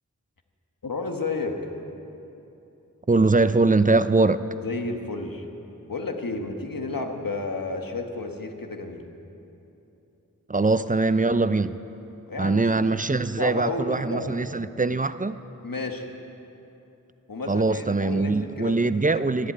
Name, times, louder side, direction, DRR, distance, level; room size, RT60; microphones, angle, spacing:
voice 1, 0.8-1.6 4.6-5.4 5.9-9.0 12.3-14.3 15.6-16.1 17.3-18.7 19.1-19.3, left 3 dB, 90° left, 4 dB, 1.3 m, -32 dB
voice 2, 3.1-4.4 10.5-11.7 12.4-15.4 17.5-19.5, right 3 dB, 25° right, 13 dB, 0.5 m, -22 dB
13.5 x 11.5 x 8.5 m, 2.9 s
wide cardioid pair, 45°, 33 cm